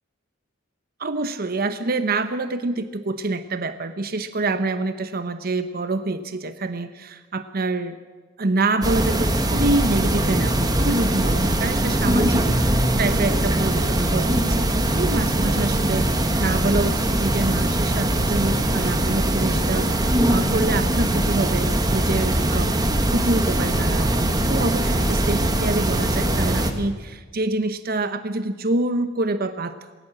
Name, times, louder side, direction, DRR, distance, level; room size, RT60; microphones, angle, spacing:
voice 1, 1.0-8.0 8.4-29.9, right 2 dB, 50° right, 11 dB, 0.9 m, -26 dB
sound 1, 8.8-26.7, right 1 dB, 20° right, 1.6 m, -21 dB
19.5 x 18.5 x 7.5 m, 1.3 s
head